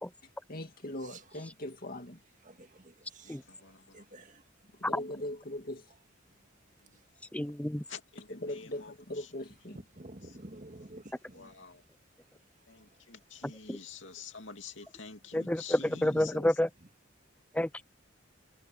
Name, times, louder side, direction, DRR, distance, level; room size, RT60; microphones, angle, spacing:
voice 1, 0.2-2.2 4.8-5.9 8.3-9.8, left 1 dB, 45° left, 2.3 m, -40 dB
voice 2, 2.4-4.9 6.3-6.5 6.9-7.1 9.7-11.9 12.6-13.1 13.3-13.4 14.2-14.3 14.6-14.7 15.5-15.8 16.1-16.3 16.8-16.9, right 2 dB, 40° right, 1.9 m, -52 dB
voice 3, 3.2-4.0 6.8-7.0 7.9-8.9 11.3-11.8 12.7-16.5, left 5 dB, 65° left, 2.7 m, -48 dB
voice 4, 7.3-7.8 13.7-13.8 15.3-16.7 17.5-17.8, left 1 dB, 5° left, 0.5 m, -29 dB
head